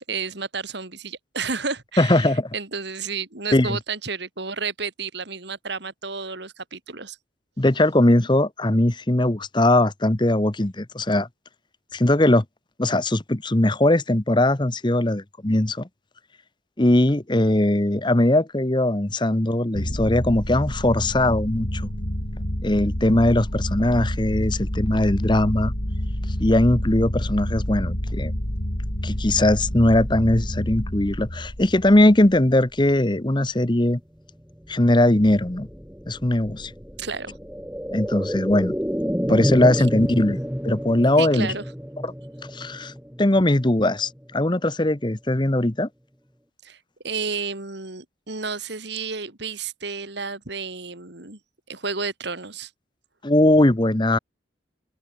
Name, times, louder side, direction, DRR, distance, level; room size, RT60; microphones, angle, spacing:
voice 1, 0.1-7.2 37.0-37.4 39.8-39.9 41.2-41.6 46.6-46.8 47.0-51.4 51.7-52.7, right 5 dB, 55° right, 2.4 m, -31 dB
voice 2, 2.0-2.5 3.5-3.8 7.6-11.3 11.9-12.4 12.8-15.9 16.8-21.9 22.6-25.7 26.4-28.3 29.0-34.0 34.7-35.7 36.1-36.7 37.9-38.7 39.3-40.4 40.6-41.5 42.0-42.1 42.5-42.9 43.2-45.9 53.2-54.2, left 1 dB, 25° left, 1.0 m, -20 dB
sound 1, 19.7-32.6, equal, 45° left, 3.8 m, -28 dB
sound 2, 34.5-44.3 44.7-44.8, equal, 5° right, 4.1 m, -30 dB
open air
head